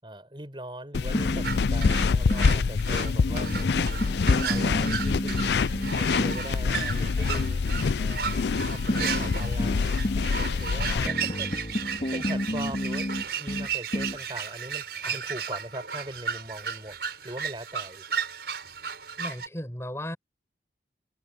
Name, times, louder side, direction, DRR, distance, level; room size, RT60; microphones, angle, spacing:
voice 1, 0.0-3.5 3.8-3.9 4.4-5.5 5.9-7.6 8.0-8.4 8.7-11.5 12.1-13.1 13.4-14.8 15.1-17.0 17.2-18.0, right 1 dB, 25° right, 6.6 m, -40 dB
sound 1, 0.9-11.1, left 5 dB, 70° left, 0.4 m, -26 dB
sound 2, 1.1-2.6 3.3-6.5 8.9-10.3 11.0-14.2, left 1 dB, 40° left, 2.7 m, -31 dB
sound 3, 1.4-19.5, right 6 dB, 65° right, 5.7 m, -35 dB
voice 2, 10.7-11.4 15.0-15.2 19.2-20.2, left 1 dB, 15° left, 7.3 m, -38 dB
head